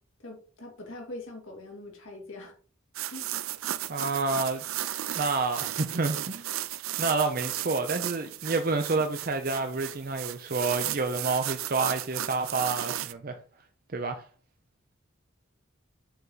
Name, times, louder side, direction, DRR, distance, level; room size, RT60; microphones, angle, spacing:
voice 1, 0.2-2.5 3.1-3.3, left 2 dB, 75° left, 2.5 m, -42 dB
sound 1, 2.9-13.1, right 13 dB, 90° right, 0.5 m, -35 dB
voice 2, 3.9-4.6 5.2-6.5 7.0-13.4 13.9-14.2, right 3 dB, 45° right, 0.6 m, -29 dB
8.1 x 4.6 x 3.9 m
head